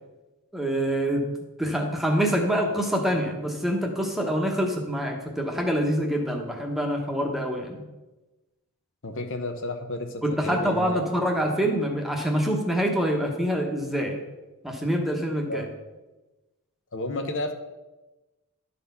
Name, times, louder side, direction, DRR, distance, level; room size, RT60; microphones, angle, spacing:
voice 1, 0.5-1.3 1.6-7.8 10.2-14.2 14.6-15.7, equal, ahead, 2 dB, 1.0 m, -26 dB
voice 2, 9.0-11.1 15.5-15.7 16.9-17.5, left 1 dB, 55° left, 6 dB, 0.8 m, -31 dB
11.5 x 4.2 x 5.5 m, 1.1 s
head